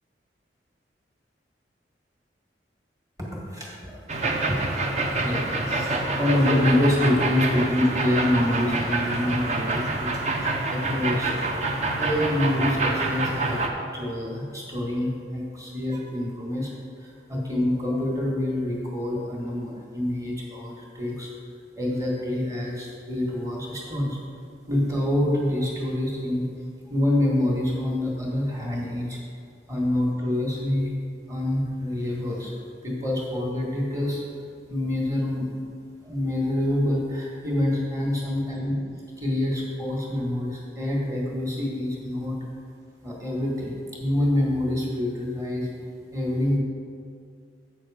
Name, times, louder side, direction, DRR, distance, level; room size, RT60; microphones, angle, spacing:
voice 1, 3.2-4.1 4.5-4.6 5.2-10.1 10.4-11.4 12.0-13.6 13.9-16.7 17.0-21.3 21.8-24.2 24.7-26.5 26.9-29.2 29.7-30.9 31.3-32.5 32.8-34.2 34.7-35.5 36.0-38.7 39.2-42.4 43.0-43.7 44.0-45.7 46.1-46.6, left 1 dB, 20° right, -3 dB, 1.7 m, -26 dB
sound 1, 4.1-13.7, right 2 dB, 40° right, 0.7 m, -27 dB
7.9 x 6.3 x 4.9 m, 2.2 s
head